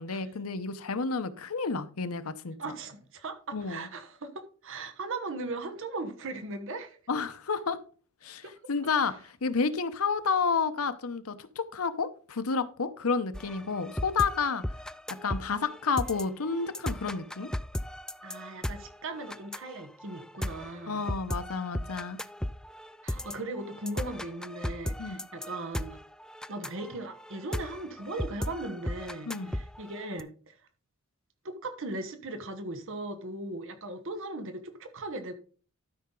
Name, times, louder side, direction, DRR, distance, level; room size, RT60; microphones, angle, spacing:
voice 1, 0.0-2.6 3.5-3.9 7.1-7.8 8.2-14.6 15.2-17.5 20.9-22.2 25.0-25.2 29.3-29.5, left 5 dB, 90° left, 0.8 m, -30 dB
voice 2, 2.6-7.0 8.4-8.5 9.1-9.2 18.2-21.0 23.0-26.0 26.5-30.6 31.4-35.3, right 2 dB, 65° right, 1.1 m, -38 dB
sound 1, 13.3-30.2, left 1 dB, 5° left, 0.3 m, -36 dB
12.5 x 5.7 x 3.8 m
head